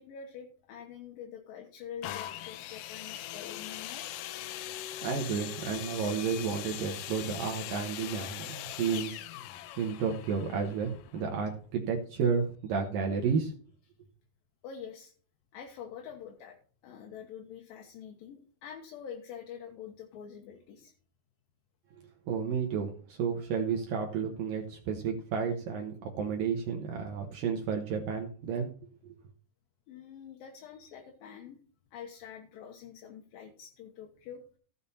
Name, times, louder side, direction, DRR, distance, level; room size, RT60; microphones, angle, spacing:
voice 1, 0.0-4.1 14.6-15.1 15.5-16.6 16.8-20.9 29.9-31.6 31.9-34.4, left 8 dB, 70° left, 2 dB, 2.7 m, -46 dB
sound 1, 2.0-11.7 12.4-12.5, left 13 dB, 90° left, 1.8 m, -41 dB
voice 2, 5.0-9.2 9.8-13.5 22.3-28.7 29.0-29.1, right 6 dB, 70° right, 2 dB, 2.6 m, -32 dB
14.5 x 7.0 x 4.2 m, 0.43 s
omnidirectional pair, 4.6 m